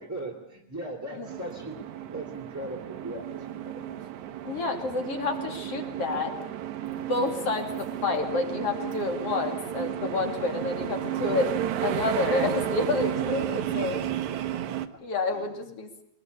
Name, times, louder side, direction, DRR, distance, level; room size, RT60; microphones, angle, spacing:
voice 1, 0.0-4.0 13.7-15.0 15.2-15.7, right 1 dB, 5° right, -2 dB, 2.4 m, -40 dB
sound 1, 1.3-14.9, right 11 dB, 65° right, 2.3 m, -33 dB
voice 2, 4.5-6.3 7.1-11.5 11.8-14.0 15.0-16.0, left 3 dB, 45° left, 4 dB, 3.5 m, -29 dB
24.5 x 20.5 x 8.4 m, 0.72 s
omnidirectional pair, 4.1 m